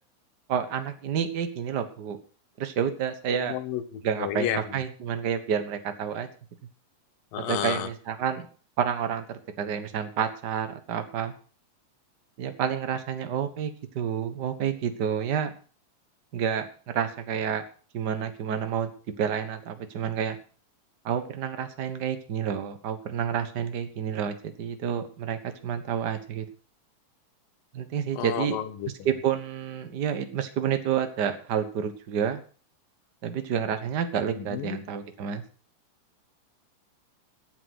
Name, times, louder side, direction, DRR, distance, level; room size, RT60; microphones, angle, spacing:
voice 1, 0.5-2.2 2.6-3.6 4.0-6.3 7.4-8.5 8.8-11.3 12.4-15.5 16.3-16.7 16.9-17.6 17.9-18.9 19.2-20.4 21.0-26.5 27.7-28.6 29.0-32.4 33.2-35.4, right 8 dB, 70° right, 8 dB, 0.9 m, -29 dB
voice 2, 3.5-4.6 7.3-7.9 28.1-28.9 34.4-34.8, left 10 dB, 80° left, 12 dB, 2.8 m, -31 dB
14.5 x 9.0 x 6.0 m, 0.40 s
omnidirectional pair, 4.0 m